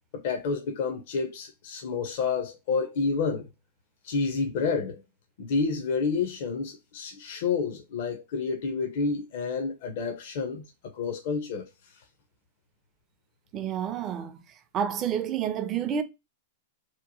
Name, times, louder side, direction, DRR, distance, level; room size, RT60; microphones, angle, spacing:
voice 1, 0.1-3.5 4.0-5.0 5.4-10.6 10.9-11.7, left 4 dB, 60° left, 0.5 m, -29 dB
voice 2, 13.5-14.4 14.7-16.0, right 8 dB, 30° right, 0.4 m, -29 dB
2.8 x 2.1 x 2.7 m
hypercardioid pair, 110°, 0 cm